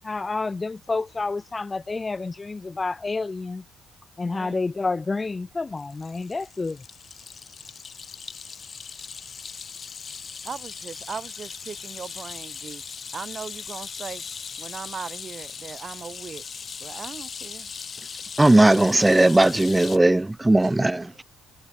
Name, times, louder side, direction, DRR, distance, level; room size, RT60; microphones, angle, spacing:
voice 1, 0.0-3.6 4.2-6.8, left 3 dB, 20° left, 0.8 m, -29 dB
sound 1, 5.8-20.0, left 6 dB, 35° left, 2.1 m, -39 dB
voice 2, 10.4-12.8 13.1-14.2 14.6-17.7 20.6-20.9, right 6 dB, 35° right, 3.2 m, -38 dB
voice 3, 18.4-21.0, right 2 dB, 10° right, 0.5 m, -17 dB
cardioid pair, 120°, 0 cm